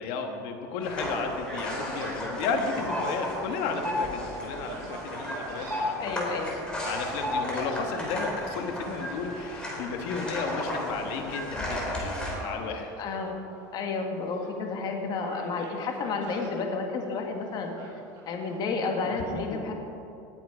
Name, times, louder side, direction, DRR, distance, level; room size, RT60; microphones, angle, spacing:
voice 1, 0.0-6.3 6.8-12.9 19.0-19.2, left 5 dB, 65° left, 5 dB, 1.4 m, -33 dB
sound 1, 0.8-12.4, left 1 dB, 10° left, 3.3 m, -33 dB
Gull seagull, 1.9-2.3 2.9-3.0 3.5-6.4 7.3-8.5 9.0-9.5 10.3-11.0 11.4-11.6 12.2-13.7 14.0-14.8 15.1-16.5 17.7-18.8, right 3 dB, 50° right, 3.5 m, -44 dB
voice 2, 6.0-6.5 13.0-13.4 13.7-17.7 18.3-19.7, left 4 dB, 45° left, 3 dB, 1.9 m, -31 dB
18.0 x 7.7 x 5.0 m, 2.7 s
supercardioid pair, 115°, 10 cm